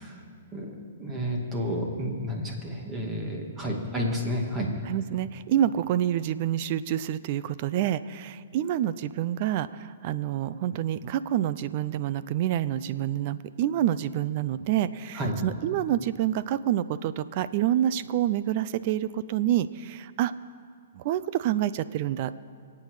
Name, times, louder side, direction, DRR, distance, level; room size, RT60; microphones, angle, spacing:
voice 1, 0.5-4.8 15.1-15.4, equal, 20° right, 1 dB, 2.3 m, -30 dB
voice 2, 4.9-20.3 20.9-22.3, right 11 dB, 45° right, 16 dB, 0.5 m, -27 dB
24.5 x 8.6 x 4.9 m, 2.1 s
hypercardioid pair, 145°, 0 cm